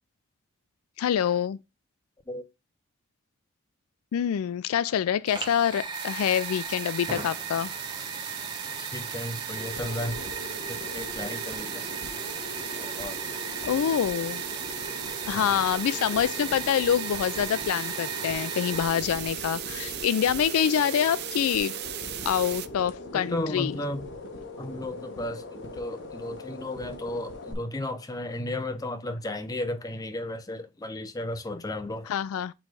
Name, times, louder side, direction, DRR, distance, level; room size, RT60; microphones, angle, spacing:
voice 1, 1.0-1.6 4.1-7.7 13.6-14.4 15.3-21.7 22.2-23.8 32.1-32.5, left 9 dB, 80° left, 0.3 m, -26 dB
Fire, 5.3-19.1, right 4 dB, 20° right, 0.7 m, -37 dB
sound 1, 5.9-22.7, right 12 dB, 50° right, 0.4 m, -38 dB
sound 2, 7.9-27.5, left 1 dB, 55° left, 1.3 m, -42 dB
voice 2, 8.8-10.2 10.7-11.9 12.8-13.2 15.3-15.6 23.1-24.1 24.6-32.1, left 1 dB, 15° left, 0.5 m, -34 dB
6.1 x 3.2 x 4.8 m
head